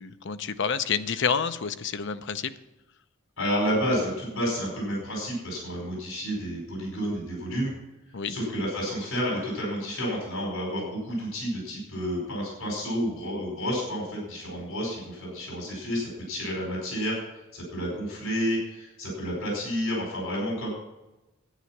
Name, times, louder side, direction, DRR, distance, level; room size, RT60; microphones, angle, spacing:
voice 1, 0.0-2.5 8.1-8.4, left 6 dB, 60° left, 11 dB, 0.7 m, -28 dB
voice 2, 3.4-7.7 8.3-17.2 17.5-20.7, equal, 85° left, -1 dB, 4.9 m, -30 dB
11.5 x 9.4 x 6.0 m, 1.0 s
head